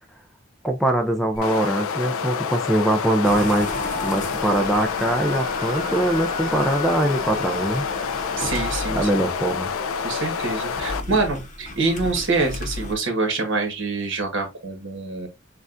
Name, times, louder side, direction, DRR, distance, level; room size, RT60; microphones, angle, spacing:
voice 1, 0.6-3.7 4.0-7.9 8.9-9.7, right 1 dB, ahead, 0.4 m, -22 dB
sound 1, 1.4-11.0, left 6 dB, 80° left, 0.4 m, -28 dB
sound 2, 3.2-12.9, left 2 dB, 35° left, 0.9 m, -34 dB
voice 2, 8.4-9.1 10.0-15.3, right 3 dB, 60° right, 1.5 m, -25 dB
6.5 x 2.4 x 2.5 m
head